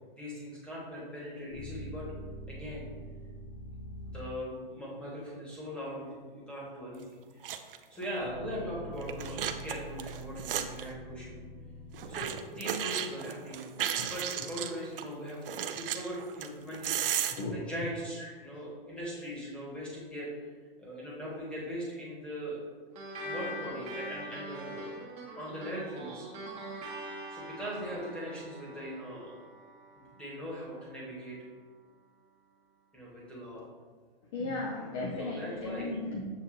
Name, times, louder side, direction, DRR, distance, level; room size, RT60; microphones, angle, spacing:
voice 1, 0.1-2.1 2.5-2.8 4.1-7.4 7.9-11.4 12.1-13.7 14.1-20.5 20.8-22.6 23.2-25.0 25.3-26.3 27.3-29.4 30.0-31.3 32.9-33.7 35.1-35.9, equal, 5° left, -6 dB, 1.3 m, -40 dB
sound 1, 1.5-4.6 8.2-12.8, equal, 60° left, 1.5 m, -44 dB
sound 2, 7.0-7.1 7.4-7.8 8.0-8.1 9.0-10.9 11.9-15.0 15.5-17.4, right 9 dB, 65° right, 0.5 m, -34 dB
sound 3, 23.0-31.8, right 1 dB, 25° right, 0.7 m, -43 dB
voice 2, 34.3-36.3, left 2 dB, 30° left, 0 dB, 0.5 m, -35 dB
7.3 x 2.5 x 2.5 m, 1.5 s
hypercardioid pair, 135°, 29 cm